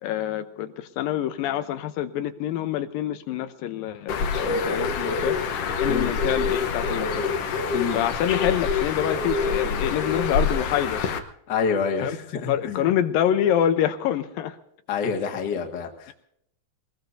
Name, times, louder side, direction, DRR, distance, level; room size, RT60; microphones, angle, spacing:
voice 1, 0.0-5.4 5.8-7.3 7.9-11.0 12.0-12.2 12.5-14.6 16.1-16.2, left 10 dB, 80° left, 9 dB, 2.5 m, -26 dB
Bird, 4.1-11.2, left 5 dB, 65° left, 1.5 m, -26 dB
voice 2, 11.5-12.9 14.9-16.1, left 5 dB, 40° left, 2 dB, 1.8 m, -27 dB
22.5 x 20.0 x 2.7 m, 0.74 s
omnidirectional pair, 4.1 m